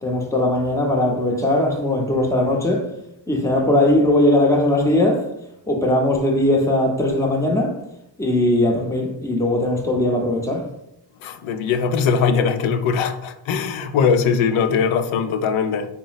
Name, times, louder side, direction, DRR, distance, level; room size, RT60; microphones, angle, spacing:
voice 1, 0.0-2.9 3.3-5.2 5.7-7.7 8.2-10.6, left 1 dB, 5° left, 0.6 m, -19 dB
voice 2, 11.2-15.9, left 6 dB, 80° left, 0.5 m, -20 dB
3.8 x 2.0 x 4.0 m
cardioid pair, 90°, 46 cm